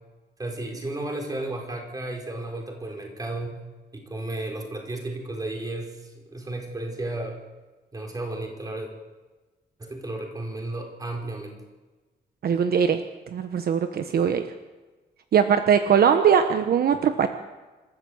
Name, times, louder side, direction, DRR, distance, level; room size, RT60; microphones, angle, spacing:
voice 1, 0.4-3.5 3.9-7.4 7.9-8.9 9.8-11.6, right 2 dB, 20° right, 2 dB, 4.2 m, -33 dB
voice 2, 12.4-13.0 13.3-14.5 15.3-17.3, right 7 dB, 60° right, 8 dB, 1.1 m, -20 dB
26.5 x 13.0 x 7.9 m, 1.2 s
wide cardioid pair, 150°, 18 cm